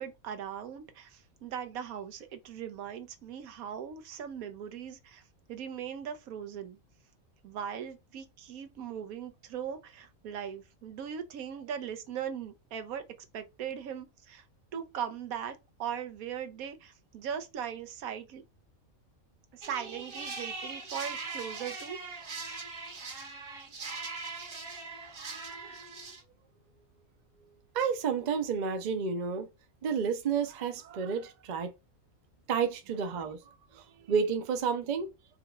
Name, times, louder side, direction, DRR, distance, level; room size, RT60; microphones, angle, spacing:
voice 1, 0.0-5.2 5.5-6.8 7.4-13.1 13.3-14.4 14.7-18.4 19.5-22.0, right 8 dB, 90° right, 1.2 m, -39 dB
sound 1, 19.6-26.2, right 4 dB, 65° right, 1.5 m, -41 dB
voice 2, 27.7-29.5 29.8-31.7 32.5-33.4 33.7-35.1, right 6 dB, 45° right, 0.6 m, -30 dB
4.6 x 2.9 x 2.3 m
omnidirectional pair, 1.4 m